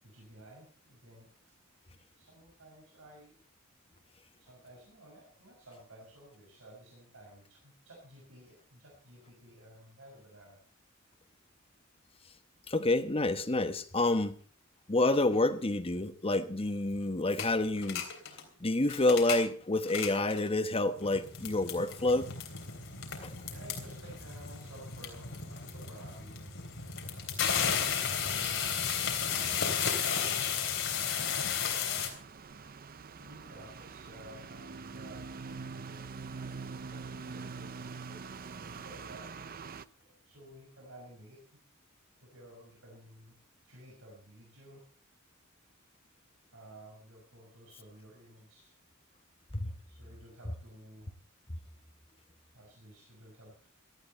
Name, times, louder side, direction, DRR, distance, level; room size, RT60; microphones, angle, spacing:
voice 1, 0.0-1.3 2.2-3.4 4.4-10.6 23.5-26.4 29.3-32.2 33.2-35.4 35.6-36.1 36.4-38.2 38.5-39.3 39.9-41.6 42.2-43.4 43.6-44.9 46.5-48.7 49.8-51.1 52.5-53.7, right 1 dB, 65° right, -3 dB, 6.3 m, -54 dB
voice 2, 12.7-14.3 14.9-18.0 18.6-22.3 23.2-23.3 49.5-49.7, left 2 dB, 25° left, 9 dB, 1.1 m, -28 dB
sound 1, 17.4-17.5 17.8-18.4 18.8-19.5 19.8-20.5 21.0-32.1, left 7 dB, 65° left, 3.4 m, -34 dB
sound 2, 32.0-39.8, right 4 dB, 45° right, 0.6 m, -44 dB
17.5 x 13.5 x 4.3 m, 0.41 s
head